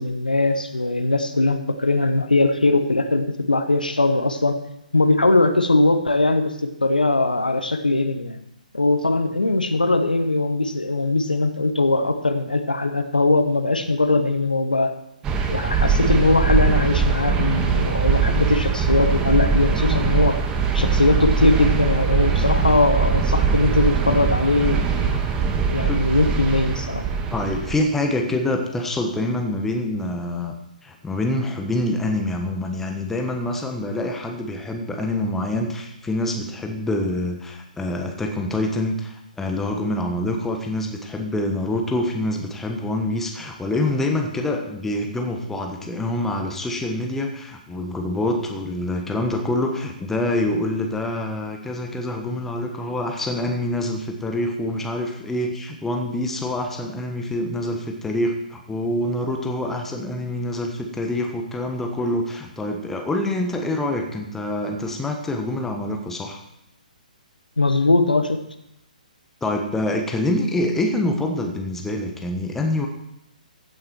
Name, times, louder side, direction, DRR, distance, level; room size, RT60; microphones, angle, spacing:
voice 1, 0.0-4.6 4.9-8.4 8.7-14.9 15.5-20.4 20.7-27.0 67.6-68.4, left 2 dB, 80° left, 9 dB, 1.2 m, -20 dB
sound 1, 15.2-27.7, right 5 dB, 15° right, 1.1 m, -21 dB
voice 2, 27.3-30.5 30.8-66.4 69.4-72.9, left 1 dB, 5° left, 3 dB, 1.3 m, -26 dB
15.0 x 8.8 x 4.6 m, 0.81 s
figure-of-eight pair, 125°, 5 cm